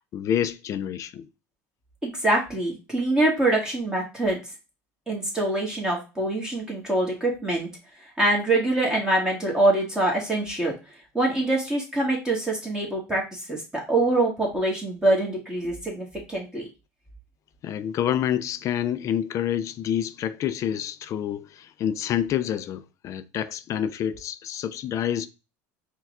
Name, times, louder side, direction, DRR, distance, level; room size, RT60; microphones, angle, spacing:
voice 1, 0.1-1.3 17.6-25.3, left 10 dB, 45° left, 0.4 m, -28 dB
voice 2, 2.0-4.4 5.1-7.7 8.2-10.7 11.1-13.6 13.9-16.6, right 2 dB, 10° right, 1.4 m, -24 dB
4.5 x 2.3 x 3.5 m
supercardioid pair, 105°, 7 cm